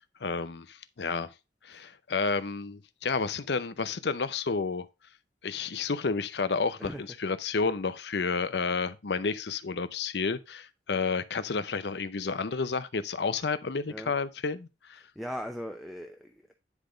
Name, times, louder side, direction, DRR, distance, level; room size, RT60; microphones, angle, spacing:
voice 1, 0.2-1.3 1.6-4.9 5.4-15.0, left 4 dB, 65° left, 0.6 m, -31 dB
voice 2, 6.8-7.2 13.9-14.1 14.9-16.5, equal, ahead, 0.5 m, -40 dB
9.9 x 3.5 x 5.0 m
head